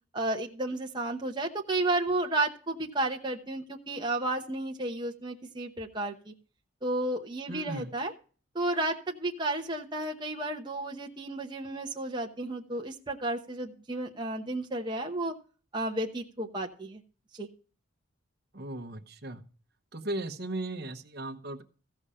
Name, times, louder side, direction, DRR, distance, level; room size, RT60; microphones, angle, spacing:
voice 1, 0.1-6.3 6.8-8.1 8.5-15.3 15.7-17.0 17.3-17.5, right 2 dB, 20° right, 1 dB, 0.9 m, -32 dB
voice 2, 7.5-7.9 18.5-19.4 19.9-21.6, right 2 dB, 50° right, 7 dB, 1.1 m, -36 dB
15.0 x 5.6 x 5.0 m, 0.39 s
head